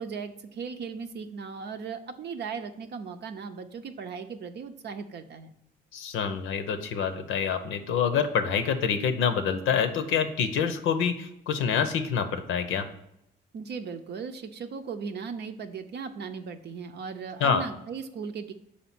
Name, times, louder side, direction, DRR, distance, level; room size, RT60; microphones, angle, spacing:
voice 1, 0.0-5.5 13.5-18.5, right 5 dB, 60° right, 6 dB, 0.6 m, -37 dB
voice 2, 5.9-12.9 17.4-17.6, left 7 dB, 90° left, 8 dB, 0.7 m, -26 dB
5.2 x 4.3 x 5.9 m, 0.79 s
cardioid pair, 90°, 20 cm